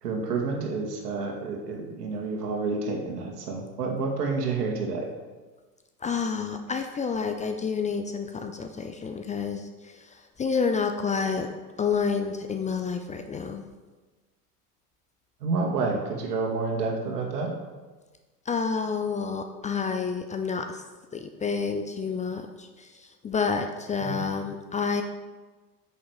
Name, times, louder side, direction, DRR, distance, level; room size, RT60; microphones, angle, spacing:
voice 1, 0.0-5.1 15.4-17.5 24.0-24.2, right 4 dB, 75° right, 1 dB, 2.1 m, -29 dB
voice 2, 6.0-11.5 11.8-13.6 18.5-20.8 21.1-25.0, left 5 dB, 15° left, 6 dB, 0.5 m, -29 dB
8.7 x 6.5 x 4.9 m, 1.3 s
hypercardioid pair, 95°, 47 cm